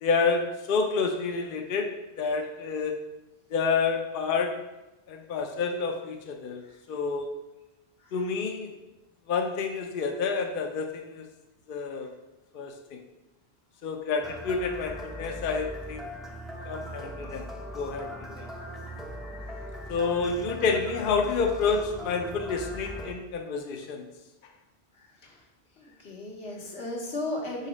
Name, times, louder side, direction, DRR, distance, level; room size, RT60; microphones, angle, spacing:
voice 1, 0.0-1.9 2.2-2.9 3.5-4.5 5.1-6.6 6.9-7.3 8.1-8.7 9.3-11.3 11.7-12.1 12.5-13.0 13.8-16.1 16.6-17.5 17.7-18.5 19.9-24.1, left 4 dB, 60° left, 3 dB, 0.7 m, -29 dB
sound 1, 14.2-23.1, equal, ahead, 0.4 m, -40 dB
voice 2, 25.0-25.4 25.8-27.7, left 2 dB, 85° left, -2 dB, 1.4 m, -37 dB
4.8 x 4.1 x 4.9 m, 1.0 s
omnidirectional pair, 1.1 m